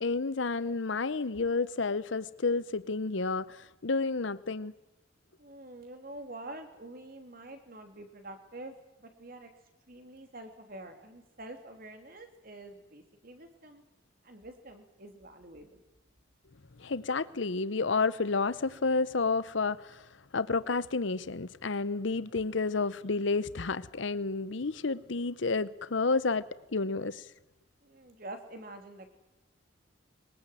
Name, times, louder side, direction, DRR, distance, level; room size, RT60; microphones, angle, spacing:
voice 1, 0.0-4.7 16.8-20.0 20.3-27.2, left 4 dB, 70° left, 0.8 m, -30 dB
voice 2, 5.4-9.5 9.9-13.8 14.2-15.8 27.8-29.2, right 2 dB, 45° right, 3.1 m, -47 dB
23.0 x 21.0 x 9.1 m
head